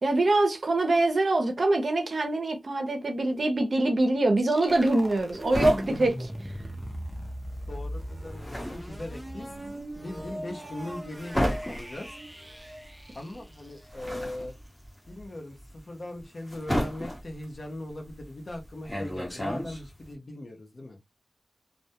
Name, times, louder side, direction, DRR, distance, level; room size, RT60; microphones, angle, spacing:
voice 1, 0.0-6.3, right 2 dB, 60° right, 0.5 m, -24 dB
sound 1, 4.4-14.2, equal, 10° right, 0.5 m, -40 dB
sound 2, 4.7-7.2 7.5-20.1, equal, 25° left, 1.1 m, -33 dB
voice 2, 7.7-9.5 9.9-12.1 13.1-14.5 15.1-21.0, left 1 dB, 55° left, 0.7 m, -40 dB
2.1 x 2.1 x 2.7 m
wide cardioid pair, 85°, 0 cm